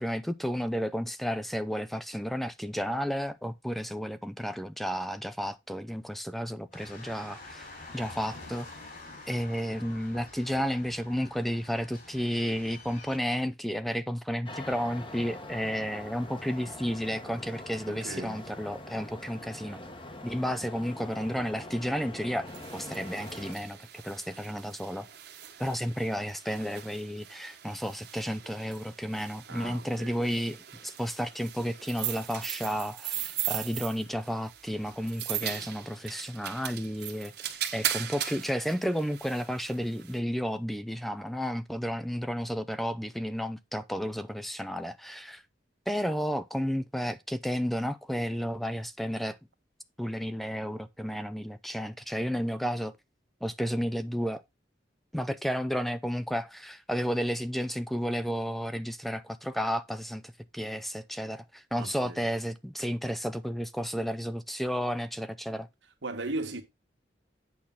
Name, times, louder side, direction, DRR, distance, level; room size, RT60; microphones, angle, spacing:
voice 1, 0.0-7.7 7.9-8.7 9.3-19.8 20.2-22.5 22.7-25.1 25.6-37.3 37.7-45.4 45.9-49.4 50.0-52.9 53.4-54.4 55.1-65.7, equal, ahead, 0.4 m, -32 dB
sound 1, 6.7-13.2, left 2 dB, 50° left, 4.4 m, -47 dB
sound 2, 14.5-23.5, left 1 dB, 30° left, 1.3 m, -43 dB
voice 2, 17.9-18.4 29.5-30.2 61.8-62.2 66.0-66.6, right 2 dB, 90° right, 1.7 m, -37 dB
sound 3, 22.5-40.2, right 11 dB, 60° right, 1.4 m, -39 dB
8.6 x 5.8 x 3.9 m
head